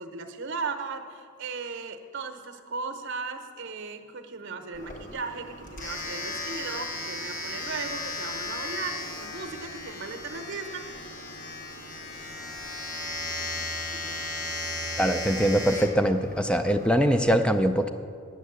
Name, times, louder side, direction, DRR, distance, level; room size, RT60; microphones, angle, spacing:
voice 1, 0.0-11.2 13.9-14.3, right 4 dB, 55° right, 6 dB, 0.8 m, -37 dB
Domestic sounds home sounds, 4.7-17.2, left 2 dB, 35° left, 1.2 m, -36 dB
voice 2, 15.0-17.9, equal, 5° left, 8 dB, 0.4 m, -23 dB
9.3 x 7.4 x 8.0 m, 2.3 s
head